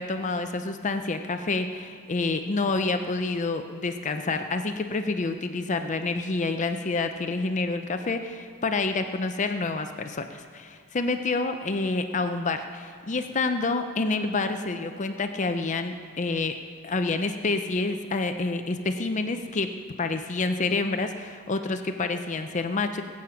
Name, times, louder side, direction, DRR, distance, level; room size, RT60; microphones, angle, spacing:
voice 1, 0.0-16.5 16.8-19.7 20.0-23.0, left 3 dB, 35° left, 7 dB, 0.5 m, -28 dB
20.5 x 8.5 x 5.8 m, 2.3 s
head